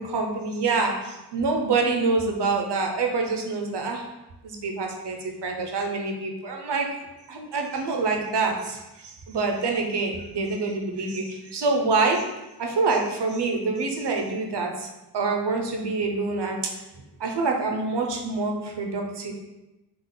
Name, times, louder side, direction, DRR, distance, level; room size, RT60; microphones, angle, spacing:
voice 1, 0.0-4.1 4.4-6.9 7.3-12.2 12.6-14.9 15.1-16.6 17.2-19.3, right 3 dB, 80° right, 2 dB, 0.7 m, -26 dB
3.9 x 2.4 x 3.7 m, 0.99 s
wide cardioid pair, 100°, 40 cm